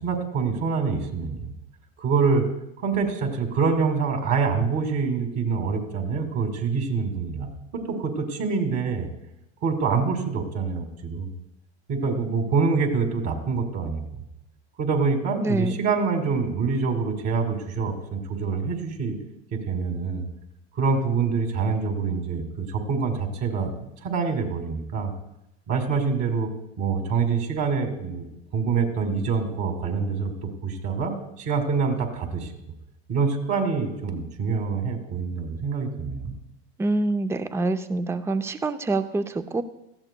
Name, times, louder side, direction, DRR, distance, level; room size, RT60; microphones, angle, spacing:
voice 1, 0.0-1.5 2.0-2.4 2.8-9.1 9.6-11.3 11.9-14.2 14.8-19.2 19.5-20.3 20.8-23.7 24.0-25.1 25.7-26.5 26.8-28.3 28.5-32.5 33.1-36.3, right 5 dB, 50° right, 4 dB, 2.3 m, -26 dB
voice 2, 15.4-15.8 36.8-39.6, right 2 dB, 10° right, 11 dB, 0.4 m, -26 dB
17.5 x 14.0 x 2.2 m, 0.86 s
hypercardioid pair, 90°, 34 cm